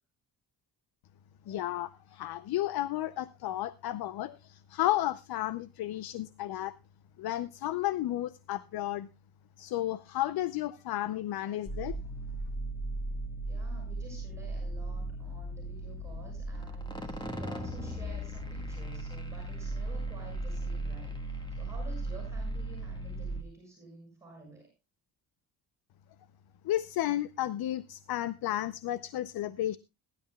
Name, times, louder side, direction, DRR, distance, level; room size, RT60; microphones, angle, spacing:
voice 1, 1.5-6.8 7.2-9.1 9.6-12.0 26.6-29.8, left 14 dB, 65° left, 15 dB, 0.6 m, -33 dB
sound 1, 11.7-23.4, right 1 dB, 10° left, 1.6 m, -37 dB
voice 2, 13.4-24.7, right 2 dB, 5° right, 0 dB, 6.6 m, -51 dB
21.5 x 11.5 x 2.3 m, 0.26 s
cardioid pair, 155°, 40 cm